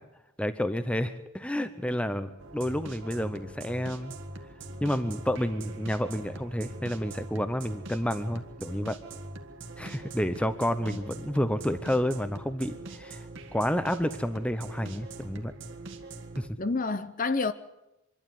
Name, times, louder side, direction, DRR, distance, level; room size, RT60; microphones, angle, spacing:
voice 1, 0.4-4.1 4.8-9.0 9.8-13.2 13.5-15.5 16.4-16.5, equal, 5° left, 0.8 m, -30 dB
sound 1, 2.4-16.5, right 2 dB, 55° right, 1.8 m, -43 dB
voice 2, 10.9-11.3 16.6-17.5, left 3 dB, 35° left, 0.7 m, -29 dB
25.5 x 12.5 x 9.4 m
head